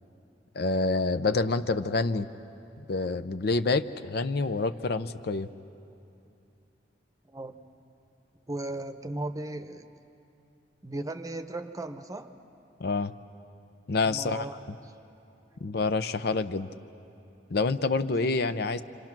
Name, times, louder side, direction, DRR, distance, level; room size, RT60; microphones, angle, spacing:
voice 1, 0.5-2.3 2.9-5.5 12.8-13.1 13.9-14.4 15.6-16.7 17.5-18.8, left 3 dB, 65° left, 11 dB, 0.6 m, -27 dB
voice 2, 7.3-7.6 8.5-9.9 10.8-12.3 14.0-14.6 14.8-14.9 15.5-15.6, right 2 dB, 20° right, 8 dB, 0.8 m, -36 dB
28.0 x 26.5 x 6.0 m, 2.8 s
head